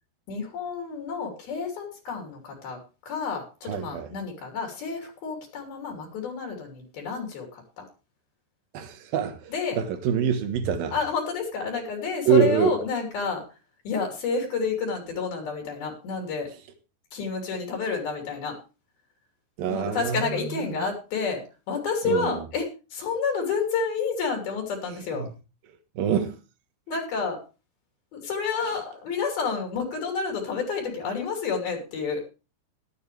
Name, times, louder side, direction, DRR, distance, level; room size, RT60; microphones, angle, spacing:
voice 1, 0.3-7.8 9.5-9.8 10.9-13.4 13.8-16.5 17.1-18.6 19.6-25.3 26.9-27.4 28.1-32.2, left 5 dB, 65° left, 4.8 m, -30 dB
voice 2, 3.7-4.1 8.7-10.9 12.3-12.7 19.6-20.2 20.7-20.9 22.0-22.4 26.0-26.4, right 7 dB, 65° right, 3.0 m, -25 dB
15.5 x 12.0 x 3.4 m
omnidirectional pair, 4.8 m